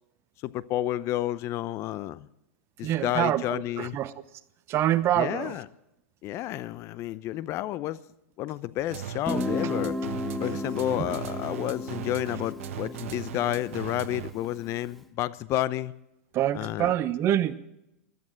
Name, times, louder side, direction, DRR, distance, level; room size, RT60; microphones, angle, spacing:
voice 1, 0.4-2.3 2.8-4.0 5.2-5.7 6.2-8.0 8.4-10.0 10.4-15.9 16.5-16.9, left 14 dB, 40° left, 0.6 m, -30 dB
voice 2, 2.8-4.1 4.7-5.6 11.0-11.2 16.3-17.5, right 12 dB, 35° right, 0.9 m, -26 dB
sound 1, 8.9-14.5, right 10 dB, 70° right, 1.3 m, -38 dB
Guitar, 9.3-14.8, left 2 dB, ahead, 1.1 m, -34 dB
16.0 x 12.0 x 7.4 m
hypercardioid pair, 110°, 7 cm